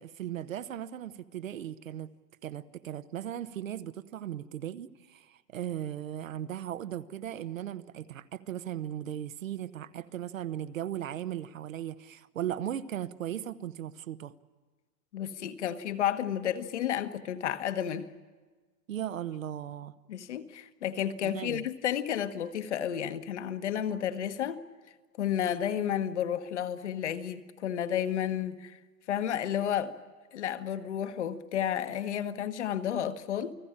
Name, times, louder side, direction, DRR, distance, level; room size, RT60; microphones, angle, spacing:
voice 1, 0.0-2.1 2.4-14.3 18.9-19.9 21.2-21.7, right 11 dB, 55° right, 1.2 m, -37 dB
voice 2, 15.1-18.1 20.1-24.6 25.2-28.8 29.1-29.9 30.3-33.5, left 10 dB, 45° left, 1.5 m, -31 dB
29.5 x 19.0 x 8.9 m
hypercardioid pair, 170°, 48 cm